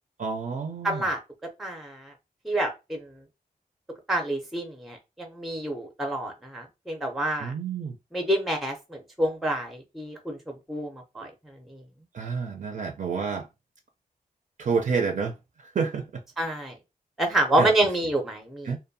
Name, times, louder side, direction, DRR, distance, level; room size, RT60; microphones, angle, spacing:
voice 1, 0.2-1.1 7.4-7.9 12.1-13.5 14.6-15.3 15.7-16.0 17.6-17.7 18.6-18.8, right 5 dB, 55° right, 0.4 m, -28 dB
voice 2, 0.8-1.2 1.6-2.1 2.4-3.1 4.1-7.5 8.1-11.3 16.4-16.7 17.2-18.8, right 1 dB, ahead, 0.5 m, -28 dB
2.6 x 2.2 x 2.6 m
wide cardioid pair, 120°, 15 cm